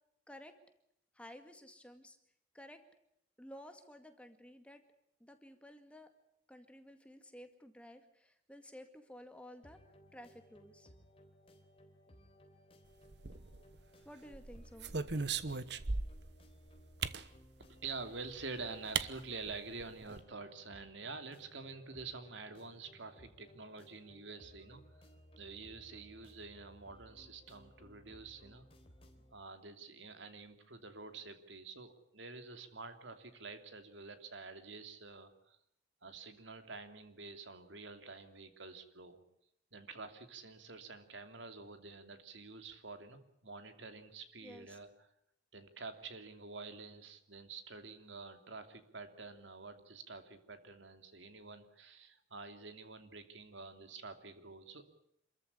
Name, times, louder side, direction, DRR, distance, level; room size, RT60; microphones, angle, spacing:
voice 1, 1.1-2.2 2.5-2.8 3.4-4.8 5.2-6.1 6.5-9.8 10.1-10.9 14.1-14.9 44.4-44.8, equal, 5° left, 7 dB, 2.0 m, -54 dB
sound 1, 9.6-29.3, equal, 30° left, 3.7 m, -61 dB
sound 2, 13.1-13.8 14.3-16.3 17.0-17.3 18.4-18.5 18.9-19.1 19.4-19.5 19.8-20.2, right 4 dB, 65° right, 1.1 m, -37 dB
voice 2, 17.7-25.0 25.4-28.7 29.3-35.6 36.0-39.2 39.7-45.1 45.5-54.8, right 4 dB, 80° right, 8 dB, 2.9 m, -48 dB
27.5 x 14.0 x 9.9 m, 0.75 s
head